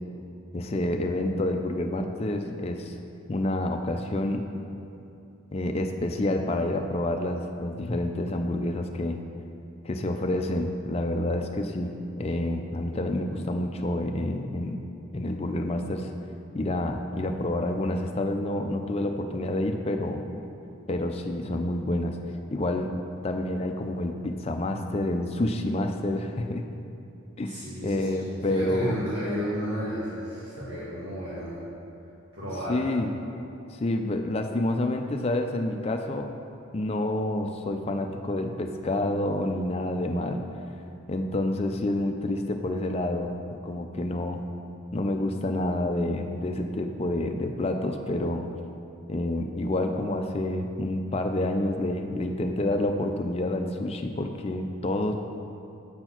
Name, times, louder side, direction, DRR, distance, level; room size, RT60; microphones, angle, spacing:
voice 1, 0.5-2.9 3.3-4.5 5.5-9.2 9.8-14.8 15.1-16.1 16.5-20.2 20.9-22.2 22.5-22.9 23.2-26.7 27.4-29.0 32.7-33.1 33.7-36.3 36.7-40.4 41.1-44.4 44.9-48.5 49.1-55.1, left 1 dB, 30° left, 4 dB, 0.4 m, -28 dB
voice 2, 27.5-31.6 32.3-32.8, equal, 85° right, -10 dB, 1.7 m, -33 dB
7.8 x 4.5 x 5.8 m, 2.7 s
head